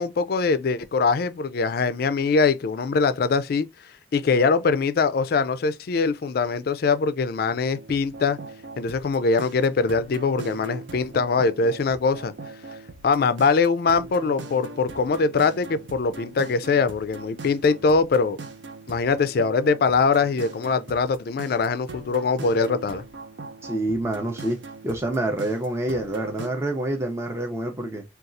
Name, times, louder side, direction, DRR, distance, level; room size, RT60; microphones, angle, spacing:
voice 1, 0.0-3.7 4.1-8.4 8.8-12.3 13.0-18.4 18.9-23.0, left 4 dB, 55° left, 0.3 m, -22 dB
sound 1, 7.7-26.5, right 3 dB, 80° right, 0.6 m, -40 dB
voice 2, 23.6-24.6 24.8-28.0, right 1 dB, 15° right, 0.5 m, -27 dB
4.0 x 2.3 x 2.5 m
head